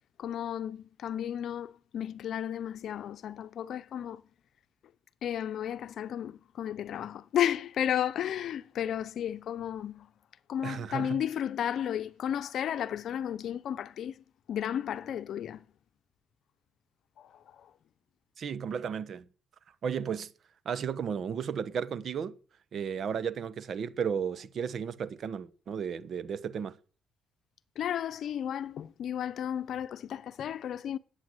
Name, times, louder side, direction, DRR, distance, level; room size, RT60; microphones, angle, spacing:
voice 1, 0.2-4.2 5.2-10.1 10.5-15.6 17.2-17.7 27.8-31.0, left 10 dB, 70° left, 0.8 m, -33 dB
voice 2, 10.6-11.2 18.4-19.3 19.8-20.3 20.6-22.4 22.7-26.8, right 7 dB, 60° right, 1.2 m, -34 dB
18.5 x 8.4 x 8.0 m
cardioid pair, 90°, 0 cm